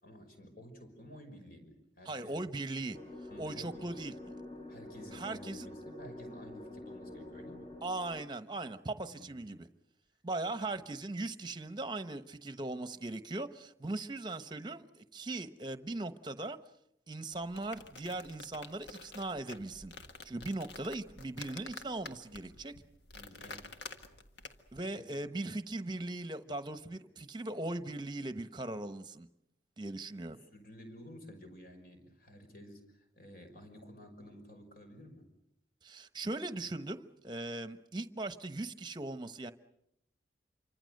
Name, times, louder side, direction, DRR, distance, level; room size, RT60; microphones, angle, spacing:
voice 1, 0.0-2.4 3.3-3.9 4.7-7.8 9.0-9.6 23.1-23.8 24.4-24.5 25.2-25.3 30.2-35.3, equal, 55° left, 5.7 m, -52 dB
voice 2, 2.0-3.0 3.4-4.1 5.1-5.7 7.8-9.7 10.2-16.6 17.1-19.9 20.2-22.7 24.7-29.3 29.8-30.4 35.8-39.5, right 2 dB, 25° right, 1.0 m, -39 dB
sound 1, 2.9-8.2, left 1 dB, 25° left, 2.9 m, -47 dB
sound 2, 17.3-24.8, left 4 dB, 70° left, 1.6 m, -50 dB
27.5 x 25.0 x 6.6 m
head